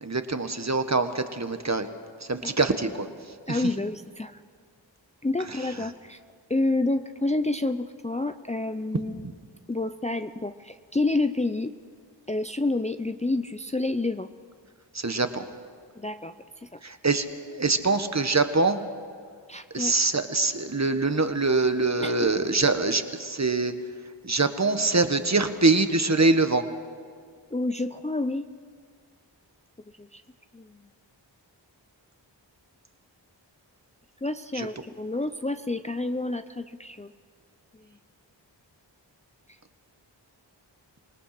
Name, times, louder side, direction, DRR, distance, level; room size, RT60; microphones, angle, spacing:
voice 1, 0.0-1.9 2.3-3.1 3.5-3.7 5.5-5.6 9.2-9.3 14.9-15.4 16.8-17.3 17.5-18.8 19.7-23.7 24.2-26.6 34.5-34.7, right 3 dB, 35° right, 8 dB, 1.5 m, -24 dB
voice 2, 3.5-4.4 5.2-6.2 6.5-9.2 9.7-11.7 12.3-14.3 16.0-16.4 16.7-16.8 19.5-19.9 22.0-22.1 27.5-28.5 30.0-30.2 30.5-30.7 34.2-37.1, left 2 dB, 15° left, 9 dB, 0.6 m, -29 dB
26.5 x 19.5 x 6.0 m, 2.1 s
cardioid pair, 45°, 45 cm